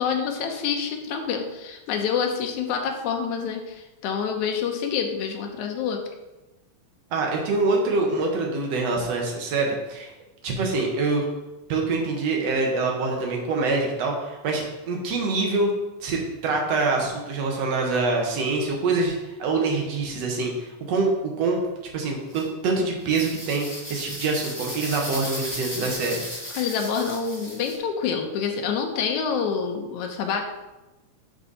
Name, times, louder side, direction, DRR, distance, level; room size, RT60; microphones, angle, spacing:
voice 1, 0.0-6.0 26.5-30.4, left 6 dB, 75° left, 4 dB, 2.3 m, -27 dB
voice 2, 7.1-10.1 10.4-11.3 11.7-15.7 16.0-21.6 21.9-26.2, right 3 dB, 60° right, 0 dB, 2.4 m, -25 dB
sound 1, 22.3-22.4 23.0-27.8, equal, 10° left, 1.2 m, -35 dB
11.0 x 4.7 x 4.1 m, 1.1 s
omnidirectional pair, 3.6 m